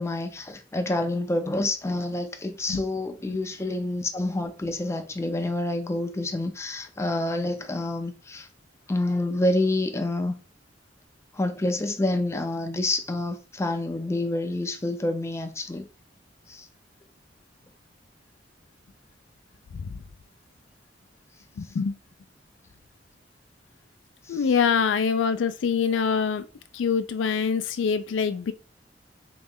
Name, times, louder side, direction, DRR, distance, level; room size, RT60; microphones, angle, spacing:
voice 1, 0.0-8.5 8.9-10.3 11.3-15.9 16.5-16.7 24.3-24.4, left 2 dB, 15° left, 0.4 m, -28 dB
voice 2, 21.6-22.0 24.3-26.4 26.7-28.5, left 6 dB, 85° left, 0.4 m, -25 dB
3.1 x 2.9 x 3.6 m
head